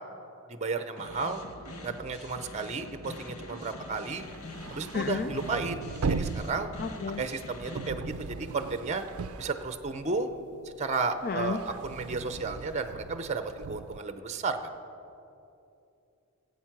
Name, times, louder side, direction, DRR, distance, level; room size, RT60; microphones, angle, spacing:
voice 1, 0.5-1.4 1.8-4.2 4.7-6.7 7.2-9.0 9.4-10.3 10.6-14.6, right 4 dB, 30° right, 9 dB, 0.6 m, -33 dB
sound 1, 1.0-7.9, left 2 dB, 85° left, 1.3 m, -44 dB
sound 2, 4.2-10.3 10.7-14.0, right 4 dB, 75° right, 0.5 m, -38 dB
voice 2, 4.9-5.3 6.8-7.2 11.2-11.6, left 5 dB, 45° left, 8 dB, 0.4 m, -31 dB
19.0 x 8.3 x 6.0 m, 2.8 s
head